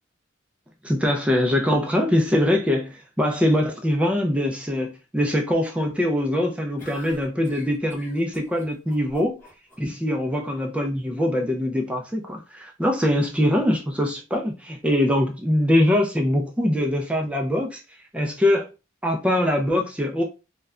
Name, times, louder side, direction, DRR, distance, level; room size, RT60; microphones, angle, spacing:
voice 1, 0.8-9.4 9.8-17.8 18.1-18.7 19.0-20.2, left 1 dB, 5° right, 0.3 m, -23 dB
sound 1, 6.8-9.8, left 1 dB, 10° left, 0.8 m, -45 dB
2.2 x 2.1 x 3.5 m
head